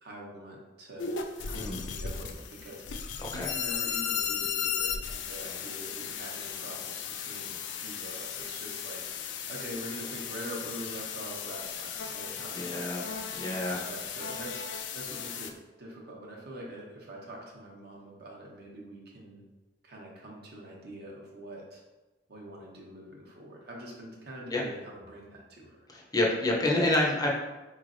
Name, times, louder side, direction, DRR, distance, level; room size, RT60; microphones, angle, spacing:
voice 1, 0.0-12.8 13.4-14.6 14.9-15.5 15.8-19.4 19.8-21.8 22.3-25.8, right 1 dB, 60° right, -2 dB, 0.8 m, -44 dB
sound 1, 1.0-15.5, left 7 dB, 80° left, 0.4 m, -36 dB
voice 2, 3.2-3.5 12.5-13.0 13.3-13.8 24.5-24.6 25.9-27.3, left 1 dB, 20° left, -2 dB, 0.5 m, -28 dB
4.0 x 3.2 x 2.5 m, 1.1 s
head